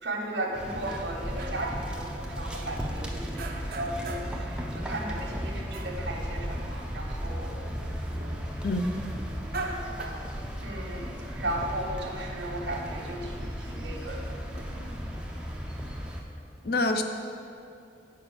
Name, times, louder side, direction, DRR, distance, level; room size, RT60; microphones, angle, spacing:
voice 1, 0.0-7.5 10.6-15.0, right 1 dB, 75° right, -1 dB, 1.1 m, -36 dB
sound 1, 0.5-16.2, equal, 5° right, 0.6 m, -35 dB
sound 2, 0.7-1.8 2.3-3.0 3.4-4.4 4.7-6.6 7.0-7.1 7.3-7.5 8.2-8.5 9.3-10.9 11.4-11.9, right 3 dB, 55° right, 0.6 m, -41 dB
voice 2, 8.6-9.1 16.6-17.0, left 2 dB, 55° left, 5 dB, 0.6 m, -26 dB
7.5 x 5.0 x 6.5 m, 2.5 s
head